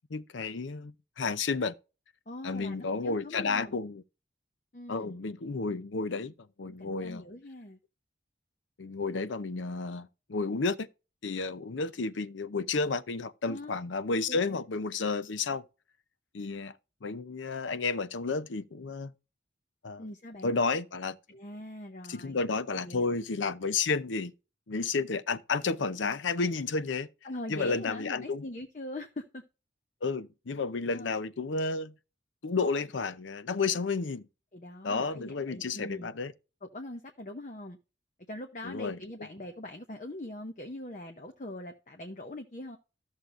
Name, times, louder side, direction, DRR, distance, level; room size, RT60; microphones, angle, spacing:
voice 1, 0.1-1.7 2.4-4.0 4.9-6.3 6.6-7.2 8.8-10.9 11.2-15.6 16.3-19.1 19.8-20.0 20.4-21.2 22.1-24.3 24.7-27.1 27.5-28.4 30.0-31.9 32.4-34.3 34.8-36.3 38.6-39.0, left 4 dB, 90° left, 0.6 m, -31 dB
voice 2, 2.3-3.7 4.7-5.2 6.6-7.8 13.4-13.8 14.3-14.6 20.0-20.5 21.3-22.4 22.8-23.2 27.2-29.4 30.9-31.2 34.5-36.1 36.6-37.8 38.3-42.8, left 1 dB, 40° left, 0.8 m, -42 dB
13.5 x 6.5 x 2.6 m
head